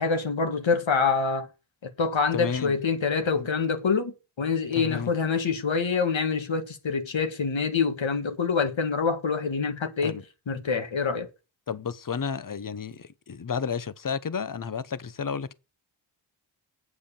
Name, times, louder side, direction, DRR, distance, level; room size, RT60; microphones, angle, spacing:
voice 1, 0.0-1.5 1.8-10.2 10.5-11.3, left 5 dB, 70° left, 1.8 m, -26 dB
voice 2, 2.3-2.7 3.3-3.5 4.8-5.1 10.0-10.2 11.7-15.5, left 6 dB, 40° left, 1.0 m, -32 dB
8.1 x 7.6 x 6.9 m
cardioid pair, 45°, 49 cm